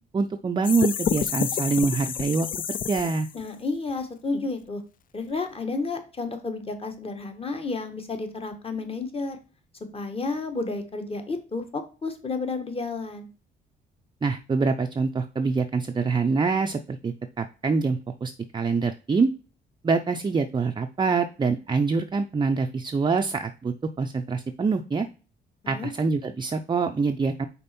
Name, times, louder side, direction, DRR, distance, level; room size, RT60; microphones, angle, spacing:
voice 1, 0.1-2.5 2.9-3.3 14.2-19.3 19.8-25.1 25.7-27.5, right 4 dB, 25° right, 5 dB, 0.5 m, -25 dB
sound 1, 0.6-3.5, left 8 dB, 45° left, 0.4 m, -29 dB
voice 2, 3.3-4.8 5.1-9.4 9.9-13.3 25.6-25.9, left 3 dB, 30° left, 6 dB, 1.4 m, -31 dB
5.3 x 4.2 x 4.2 m, 0.34 s
cardioid pair, 90°, 20 cm